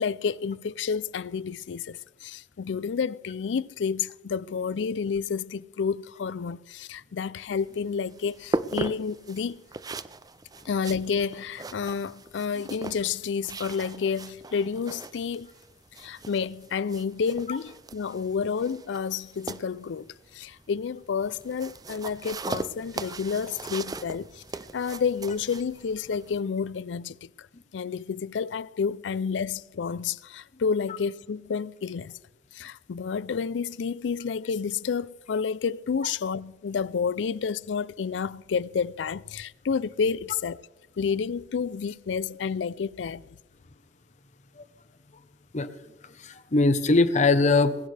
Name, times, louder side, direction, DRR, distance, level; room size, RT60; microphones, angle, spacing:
voice 1, 0.0-9.6 10.7-15.5 16.0-24.4 24.7-27.5 27.7-32.2 32.5-40.6 41.0-43.2, left 6 dB, 80° left, 0.4 m, -30 dB
sound 1, 7.6-26.4, right 3 dB, 20° right, 0.4 m, -39 dB
voice 2, 46.0-47.8, left 3 dB, 40° left, 0.9 m, -22 dB
19.5 x 17.0 x 3.4 m
head